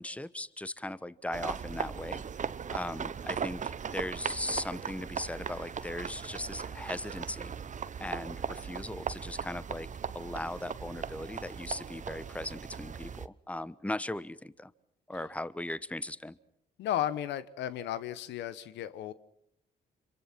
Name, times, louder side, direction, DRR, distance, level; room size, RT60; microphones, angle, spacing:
voice 1, 0.0-2.2 2.7-7.5 8.0-9.9 10.1-14.7 15.1-16.4, left 1 dB, 5° left, 17 dB, 1.1 m, -38 dB
sound 1, 1.3-13.3, right 7 dB, 40° right, 1.0 m, -38 dB
voice 2, 16.8-19.1, left 11 dB, 80° left, 15 dB, 1.1 m, -34 dB
26.5 x 24.0 x 5.9 m, 0.77 s
supercardioid pair, 60°, 18 cm